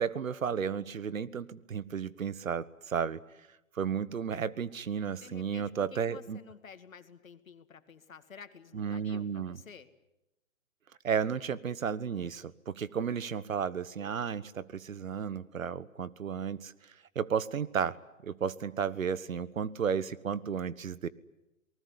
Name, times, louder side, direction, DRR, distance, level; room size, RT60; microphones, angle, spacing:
voice 1, 0.0-3.2 3.7-6.4 8.7-9.6 11.0-16.7 17.1-21.1, right 7 dB, 80° right, 18 dB, 1.3 m, -33 dB
voice 2, 5.2-9.9, left 6 dB, 80° left, 10 dB, 2.2 m, -51 dB
28.0 x 19.5 x 9.8 m, 0.92 s
hypercardioid pair, 145°, 40 cm